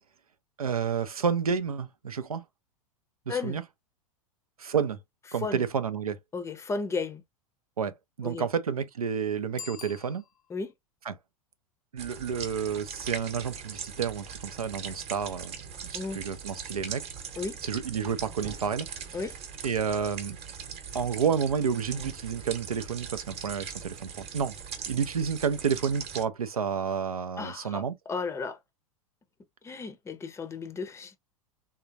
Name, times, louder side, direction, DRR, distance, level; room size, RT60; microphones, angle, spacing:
voice 1, 0.6-2.4 3.3-3.6 4.6-5.0 5.3-6.2 7.8-10.2 11.0-11.1 11.9-15.6 15.8-17.1 17.6-19.2 19.6-20.4 20.9-24.5 24.9-27.9, right 7 dB, 80° right, 0.6 m, -30 dB
voice 2, 6.3-7.2 8.2-8.5 10.5-10.7 15.9-16.2 17.4-17.6 19.1-19.3 27.4-28.6 29.6-31.2, left 4 dB, 15° left, 0.6 m, -34 dB
Bicycle bell, 9.5-10.7, left 6 dB, 70° left, 0.5 m, -45 dB
sound 1, 12.0-26.2, right 7 dB, 35° right, 0.9 m, -40 dB
3.5 x 2.8 x 2.4 m
figure-of-eight pair, 90°, 18 cm